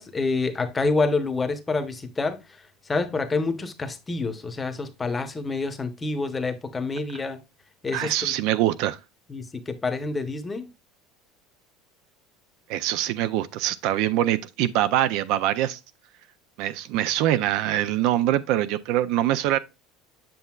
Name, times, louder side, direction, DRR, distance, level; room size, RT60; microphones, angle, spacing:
voice 1, 0.0-2.4 2.9-7.4 7.8-8.3 9.3-10.7, left 3 dB, 15° left, 0.9 m, -27 dB
voice 2, 7.9-9.0 12.7-15.8 16.6-19.6, right 13 dB, 65° right, 0.4 m, -24 dB
7.7 x 6.6 x 2.3 m
supercardioid pair, 140°, 0 cm